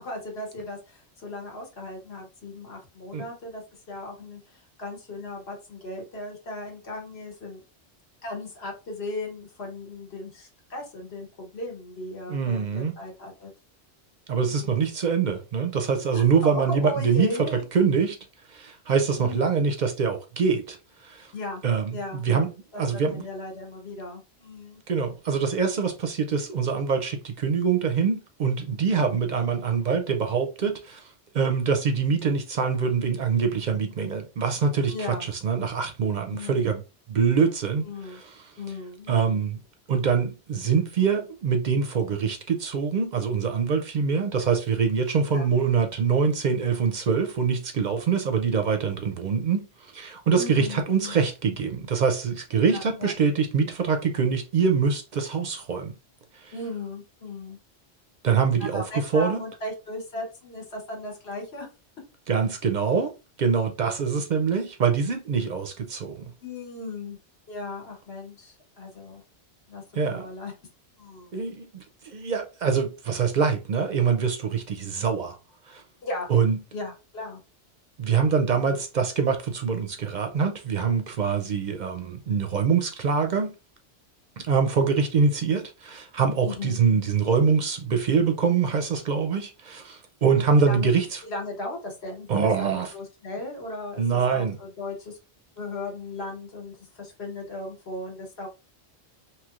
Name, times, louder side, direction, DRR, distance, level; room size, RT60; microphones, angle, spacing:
voice 1, 0.0-7.6 8.2-13.5 14.3-14.7 16.1-17.6 19.2-19.5 21.3-21.6 21.9-22.2 22.7-24.8 34.9-35.3 36.3-36.6 37.8-38.2 38.6-39.4 45.3-45.5 50.3-51.1 52.7-53.1 56.5-57.6 58.6-61.7 66.4-67.2 67.5-69.2 69.7-70.5 71.0-71.3 76.0-76.3 76.7-77.4 78.5-78.8 86.4-86.8 90.6-90.9 91.2-95.2 95.6-98.5, left 2 dB, 65° left, 1.3 m, -37 dB
voice 2, 12.3-12.9 14.3-18.2 18.5-20.8 21.0-21.3 21.6-22.5 22.8-23.2 24.9-36.8 37.1-38.4 39.1-39.6 39.9-55.9 56.3-56.5 58.2-59.4 62.3-63.1 63.4-66.3 70.0-70.3 71.3-75.4 75.7-75.8 76.3-76.6 78.0-83.5 84.4-91.2 92.3-92.9 94.0-94.6, right 6 dB, 55° right, 0.5 m, -24 dB
3.1 x 2.9 x 2.4 m
omnidirectional pair, 1.1 m